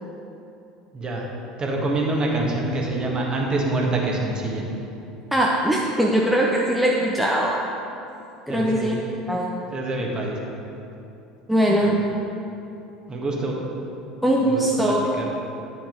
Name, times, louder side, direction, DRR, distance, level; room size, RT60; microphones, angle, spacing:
voice 1, 0.9-1.2 1.6-4.7 8.5-8.9 9.7-10.4 11.8-11.9 13.1-13.5 14.4-15.3, right 2 dB, 25° right, -1 dB, 1.5 m, -26 dB
voice 2, 5.3-7.6 8.5-9.5 11.5-11.9 14.2-15.1, right 1 dB, ahead, -2 dB, 0.7 m, -21 dB
10.0 x 6.0 x 3.9 m, 2.8 s
figure-of-eight pair, 70°, 3 cm